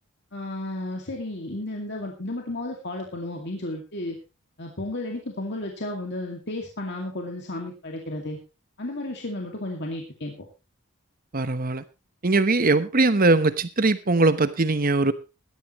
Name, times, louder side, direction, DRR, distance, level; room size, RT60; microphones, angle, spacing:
voice 1, 0.3-4.2 4.6-8.4 8.8-10.4, left 1 dB, 50° left, 2.2 m, -33 dB
voice 2, 11.3-11.8 12.2-15.1, right 3 dB, 40° right, 1.0 m, -21 dB
17.5 x 12.5 x 3.1 m
head